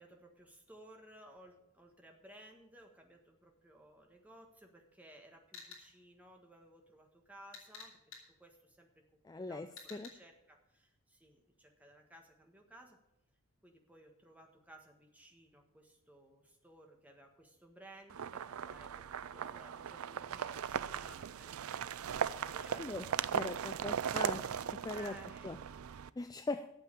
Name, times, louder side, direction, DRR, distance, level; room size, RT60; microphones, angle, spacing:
voice 1, 0.0-8.0 8.3-13.0 13.6-23.8 24.9-25.5, right 1 dB, 5° right, 2 dB, 1.4 m, -58 dB
sound 1, 5.5-5.8 7.5-8.2 9.8-10.1, left 5 dB, 70° left, 4.3 m, -50 dB
voice 2, 9.3-10.1 22.8-23.0 23.3-24.4 24.8-25.1 25.4-25.6 26.2-26.7, left 2 dB, 15° left, 10 dB, 0.3 m, -40 dB
sound 2, 18.1-26.1, right 8 dB, 80° right, 0.4 m, -38 dB
8.7 x 7.5 x 8.9 m, 0.88 s
head